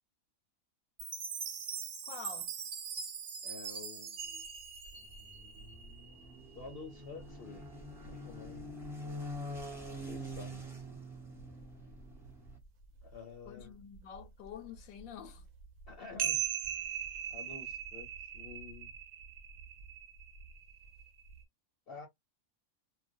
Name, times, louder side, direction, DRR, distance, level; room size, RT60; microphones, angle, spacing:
Chime, 1.0-5.4, right 7 dB, 60° right, 0.5 m, -42 dB
voice 1, 2.1-2.5 13.5-15.4, left 8 dB, 85° left, 1.0 m, -47 dB
voice 2, 3.4-4.4 6.5-7.7 8.1-8.7 10.0-10.7 13.0-13.8 15.9-16.4 17.3-18.1 18.3-18.9 21.9-22.1, left 4 dB, 60° left, 0.7 m, -49 dB
sound 1, 4.2-10.4 10.8-10.9 11.2-12.6 13.0-13.1 13.4-21.4, right 9 dB, 85° right, 1.0 m, -42 dB
sound 2, 4.9-12.6, equal, 5° right, 0.6 m, -45 dB
2.4 x 2.1 x 2.5 m
omnidirectional pair, 1.4 m